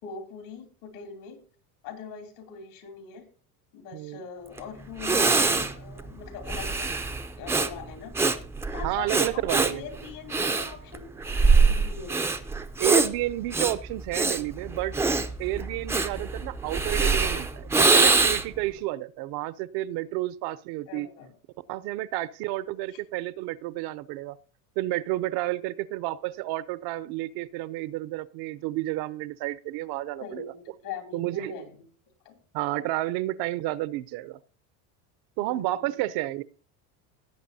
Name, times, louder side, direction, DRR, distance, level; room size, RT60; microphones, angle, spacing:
voice 1, 0.0-1.4 1.8-3.3 3.7-6.9 7.4-8.1 8.7-12.2 20.9-21.3 22.9-23.0 30.2-31.9 32.2-32.4 35.4-35.9, left 6 dB, 70° left, 6 dB, 2.8 m, -42 dB
voice 2, 3.9-4.2 8.8-9.8 12.8-14.9 15.4-21.1 21.7-24.4 24.8-30.5 31.1-31.5 32.5-34.4 35.4-36.4, right 16 dB, 60° right, 17 dB, 0.6 m, -30 dB
Breathing, 4.6-4.7 5.0-18.6, right 4 dB, 5° right, 0.4 m, -24 dB
17.0 x 8.0 x 2.7 m, 0.41 s
supercardioid pair, 115°, 44 cm